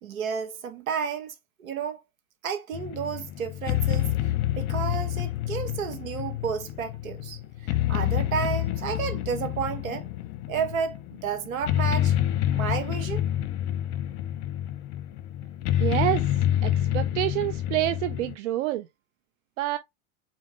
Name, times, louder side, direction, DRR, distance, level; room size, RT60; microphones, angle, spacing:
voice 1, 0.0-2.0 2.4-4.1 4.6-10.1 10.5-12.1 12.5-13.2, right 6 dB, 75° right, 1.3 m, -31 dB
sound 1, 2.7-18.3, left 12 dB, 50° left, 0.8 m, -28 dB
voice 2, 15.8-16.3 16.6-18.9 19.6-19.8, right 14 dB, 60° right, 0.6 m, -27 dB
4.2 x 3.7 x 3.1 m
hypercardioid pair, 95°, 41 cm